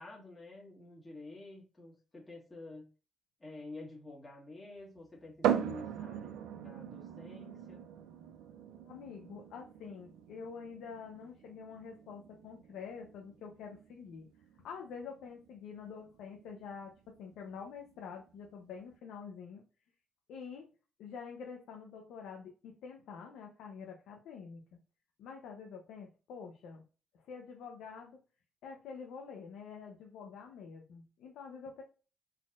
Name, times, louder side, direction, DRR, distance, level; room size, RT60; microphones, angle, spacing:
voice 1, 0.0-2.8 3.4-7.8, left 2 dB, 20° left, -3 dB, 1.6 m, -50 dB
sound 1, 5.4-18.9, right 9 dB, 90° right, 0.4 m, -41 dB
voice 2, 8.9-14.3 14.6-19.6 20.3-20.7 21.0-24.8 25.2-26.8 27.1-28.2 28.6-31.8, left 6 dB, 85° left, 2 dB, 0.7 m, -47 dB
4.1 x 4.1 x 2.4 m, 0.34 s
cardioid pair, 90°, 0 cm